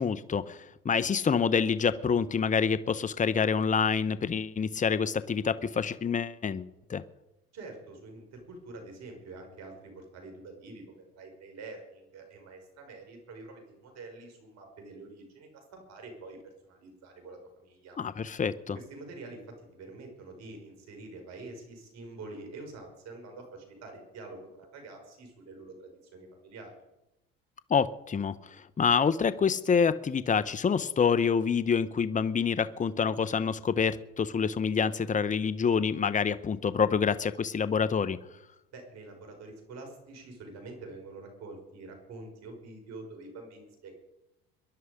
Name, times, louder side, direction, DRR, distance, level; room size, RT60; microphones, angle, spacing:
voice 1, 0.0-7.0 18.0-18.8 27.7-38.2, left 6 dB, 25° left, 15 dB, 0.9 m, -27 dB
voice 2, 7.5-18.0 18.7-26.7 38.7-44.0, right 3 dB, 65° right, 4 dB, 5.7 m, -46 dB
23.0 x 11.0 x 5.2 m, 0.91 s
hypercardioid pair, 70°, 29 cm